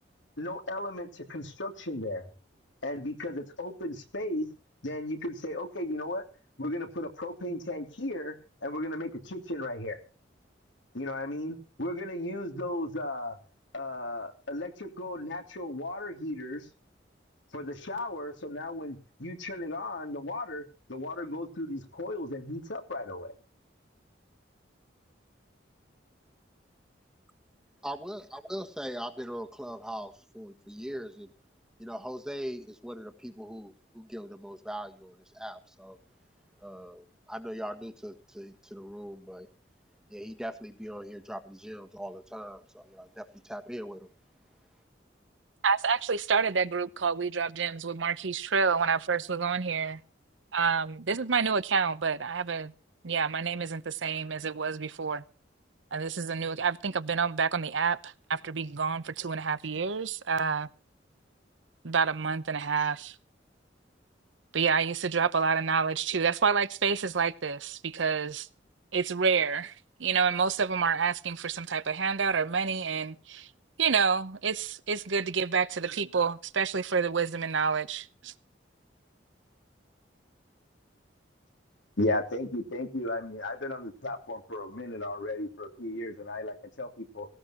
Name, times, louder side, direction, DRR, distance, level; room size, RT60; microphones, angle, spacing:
voice 1, 0.4-2.3 2.8-4.5 4.8-6.2 6.6-8.3 8.6-10.0 10.9-13.4 13.7-16.7 17.5-23.3 82.0-87.3, left 1 dB, 80° left, 2.9 m, -35 dB
voice 2, 27.8-31.3 31.8-36.0 36.6-39.5 40.1-44.1, equal, 5° right, 1.4 m, -40 dB
voice 3, 45.6-50.0 50.5-52.7 53.0-55.2 55.9-60.7 61.8-63.1 64.5-68.5 68.9-69.7 70.0-73.5 73.8-78.3, right 5 dB, 85° right, 0.8 m, -28 dB
18.0 x 16.5 x 3.0 m
head